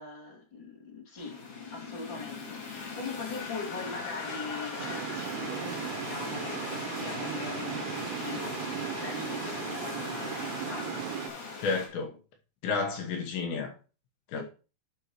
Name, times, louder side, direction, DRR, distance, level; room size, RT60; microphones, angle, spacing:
voice 1, 0.0-1.4 1.7-11.0 14.3-14.4, left 3 dB, 35° left, 2.0 m, -41 dB
sound 1, 1.2-11.9, left 4 dB, 50° left, 2.5 m, -39 dB
sound 2, 4.8-11.3, right 10 dB, 85° right, 3.6 m, -37 dB
voice 2, 11.6-12.2 12.6-13.7 14.3-14.4, left 4 dB, 70° left, 3.1 m, -31 dB
12.0 x 5.5 x 3.0 m
omnidirectional pair, 5.7 m